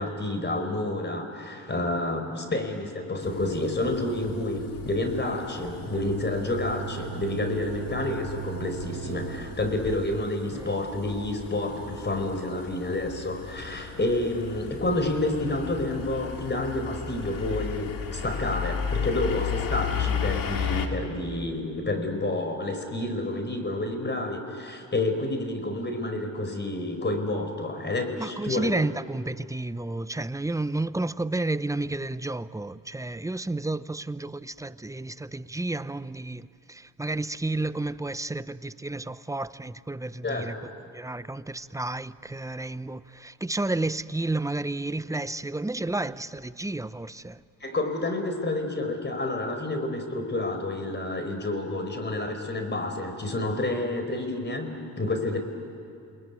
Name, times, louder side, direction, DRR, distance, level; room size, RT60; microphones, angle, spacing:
voice 1, 0.0-28.7 40.2-40.5 47.6-55.4, left 2 dB, 25° left, 4.7 m, -29 dB
sound 1, 3.1-9.9, right 11 dB, 60° right, 1.0 m, -40 dB
sound 2, 3.2-20.9, left 7 dB, 55° left, 2.5 m, -35 dB
voice 2, 28.2-40.6 40.9-47.4, right 2 dB, 10° right, 0.7 m, -31 dB
28.5 x 21.0 x 9.6 m
supercardioid pair, 60°, 39 cm